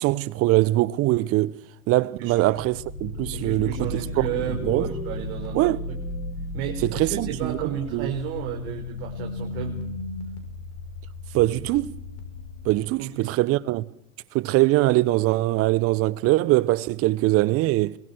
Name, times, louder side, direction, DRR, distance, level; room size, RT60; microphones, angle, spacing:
voice 1, 0.0-1.6 1.9-4.0 4.6-4.9 5.5-5.8 6.9-7.6 7.9-8.1 11.3-12.0 12.6-13.8 14.3-18.0, right 18 dB, 35° right, 1.0 m, -22 dB
sound 1, 2.4-13.1, left 2 dB, 50° left, 6.3 m, -35 dB
voice 2, 3.3-6.0 6.5-9.8 13.0-13.3, right 10 dB, 50° right, 4.5 m, -33 dB
28.0 x 23.0 x 4.7 m
hypercardioid pair, 100°, 42 cm